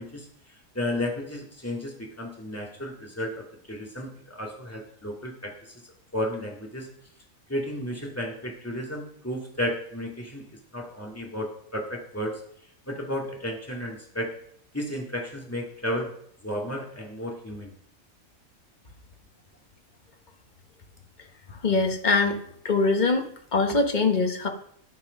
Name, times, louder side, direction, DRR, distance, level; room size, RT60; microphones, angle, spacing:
voice 1, 0.0-5.8 6.1-6.9 7.5-10.5 10.7-12.4 12.9-14.3 14.7-16.1 16.4-17.7, left 1 dB, 10° left, -1 dB, 2.3 m, -33 dB
voice 2, 21.6-23.3 23.5-24.5, left 3 dB, 35° left, 5 dB, 1.3 m, -23 dB
11.0 x 8.3 x 5.3 m, 0.65 s
omnidirectional pair, 1.4 m